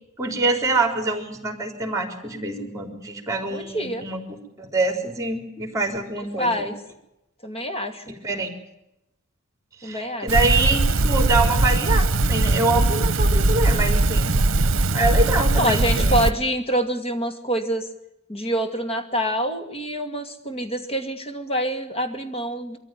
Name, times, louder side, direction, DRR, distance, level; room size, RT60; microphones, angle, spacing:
voice 1, 0.2-6.7 8.2-8.5 9.8-14.3 14.9-16.3, right 2 dB, 15° right, 5 dB, 4.0 m, -25 dB
voice 2, 3.5-4.1 6.1-6.8 7.4-8.1 9.8-10.3 15.5-17.9 18.3-22.8, equal, 25° left, 7 dB, 2.3 m, -26 dB
sound 1, 10.3-16.3, right 2 dB, 60° right, 1.1 m, -20 dB
23.5 x 14.5 x 9.3 m, 0.87 s
head